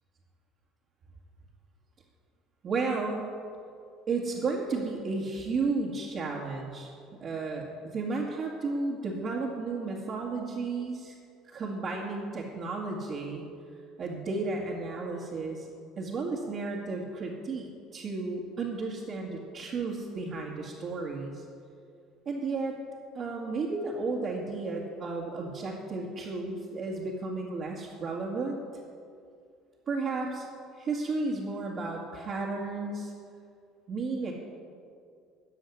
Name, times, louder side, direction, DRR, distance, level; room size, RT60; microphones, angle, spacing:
voice 1, 2.6-3.3 4.1-11.2 11.4-13.4 14.0-15.7 16.0-21.4 22.3-22.8 23.1-28.6 29.9-30.5 30.8-33.1 33.9-34.3, right 3 dB, 35° right, -4 dB, 2.0 m, -33 dB
14.0 x 7.1 x 9.7 m, 2.4 s
cardioid pair, 135°, 0 cm